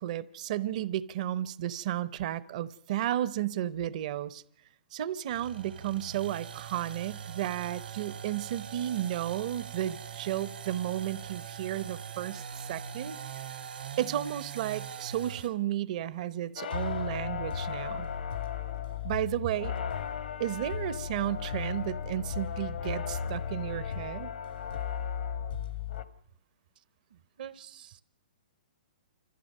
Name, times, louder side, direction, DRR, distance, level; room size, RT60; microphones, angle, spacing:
voice 1, 0.0-4.4 4.9-12.4 12.7-13.2 14.0-18.1 19.0-19.7 20.4-24.3, right 12 dB, 50° right, 0.8 m, -33 dB
sound 1, 5.3-15.6, right 8 dB, 85° right, 3.1 m, -42 dB
sound 2, 16.6-26.0, left 7 dB, 80° left, 1.3 m, -35 dB
voice 2, 27.1-28.0, right 9 dB, 65° right, 1.1 m, -46 dB
28.0 x 14.0 x 6.6 m
hypercardioid pair, 145°, 5 cm